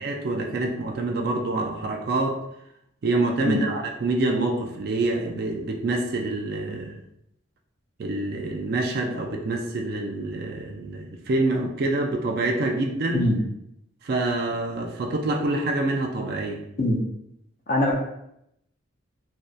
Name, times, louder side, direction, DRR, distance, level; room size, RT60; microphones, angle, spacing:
voice 1, 0.0-2.4 3.0-7.0 8.0-13.3 14.0-16.6, right 2 dB, 50° right, 2 dB, 0.3 m, -26 dB
voice 2, 17.7-18.0, left 1 dB, 45° left, 0 dB, 0.4 m, -22 dB
2.6 x 2.1 x 2.2 m, 0.78 s
head